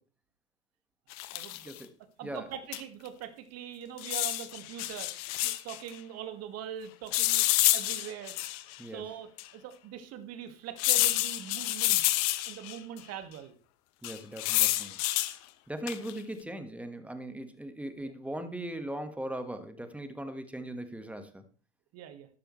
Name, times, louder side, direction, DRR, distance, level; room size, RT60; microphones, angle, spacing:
sound 1, 1.1-1.7 2.7-2.8 3.1-3.2 4.0-5.8 7.1-8.7 9.4-9.5 10.8-12.8 14.0-15.3 15.9-16.2, left 17 dB, 45° left, 1.1 m, -28 dB
voice 1, 1.5-1.9 2.2-2.5 8.8-9.0 14.0-15.0 15.7-21.4, right 1 dB, 5° right, 9 dB, 1.6 m, -39 dB
voice 2, 2.2-5.1 5.4-8.4 8.9-12.0 12.5-13.6 18.0-18.1 21.9-22.3, right 9 dB, 40° right, 9 dB, 2.0 m, -42 dB
12.0 x 12.0 x 3.3 m, 0.38 s
figure-of-eight pair, 90°, 39 cm